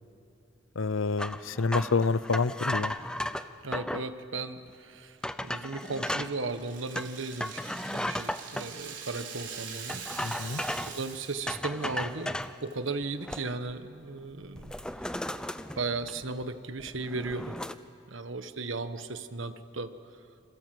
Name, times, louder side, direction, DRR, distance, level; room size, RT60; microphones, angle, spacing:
voice 1, 0.8-2.9 10.2-10.6, left 4 dB, 85° left, 17 dB, 0.7 m, -28 dB
sound 1, 1.2-4.1 4.7-4.8 5.2-6.3 6.9-8.7 9.9-11.0 11.5-12.6 13.0-13.7 14.0-14.2 14.6-16.4 16.8-17.7, left 1 dB, 5° left, 0.5 m, -35 dB
voice 2, 3.6-7.6 7.9-15.2 15.7-17.6 18.1-19.9, right 3 dB, 80° right, 9 dB, 1.4 m, -36 dB
Rattle (instrument), 5.8-11.6 11.9-12.0 12.4-12.9, right 7 dB, 65° right, 4.8 m, -43 dB
27.5 x 26.5 x 7.8 m, 2.9 s
head